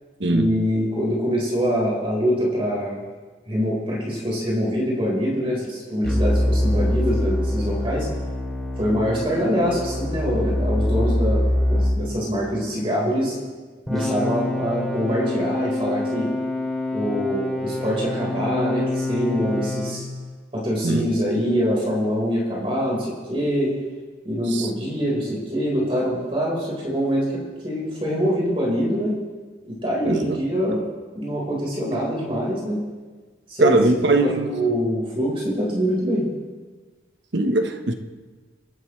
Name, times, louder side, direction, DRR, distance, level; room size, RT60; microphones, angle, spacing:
voice 1, 0.3-3.0 3.5-8.1 8.8-13.3 13.9-16.3 16.9-20.0 20.5-23.7 24.2-27.3 27.6-29.1 29.7-30.8 31.1-32.8 33.5-33.8 34.2-36.3, equal, 30° right, -4 dB, 4.6 m, -24 dB
sound 1, 6.0-12.0 13.9-20.0, left 1 dB, ahead, 3.2 m, -25 dB
voice 2, 30.0-30.4 33.6-34.5 37.3-37.9, right 2 dB, 75° right, 5 dB, 1.3 m, -20 dB
27.0 x 12.5 x 3.3 m, 1.4 s
head